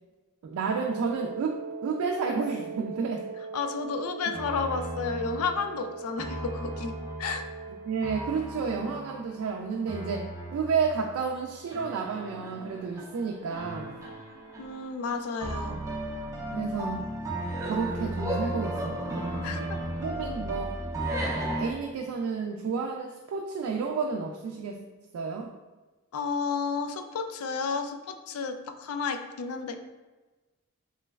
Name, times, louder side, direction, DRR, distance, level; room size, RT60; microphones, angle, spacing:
voice 1, 0.4-3.3 7.8-14.0 15.7-15.8 16.5-17.1 17.6-19.6 20.0-20.7 21.4-24.8 25.1-25.5, right 5 dB, 75° right, 2 dB, 0.3 m, -31 dB
Wind instrument woodwind instrument, 0.6-8.5, right 5 dB, 50° right, 0.7 m, -40 dB
voice 2, 3.5-6.9 7.2-7.4 14.6-15.8 19.4-19.6 26.1-29.8, left 5 dB, 80° left, 7 dB, 0.3 m, -32 dB
sound 1, 4.3-21.7, right 1 dB, 15° right, 0.5 m, -35 dB
3.1 x 3.0 x 2.3 m, 1.2 s
head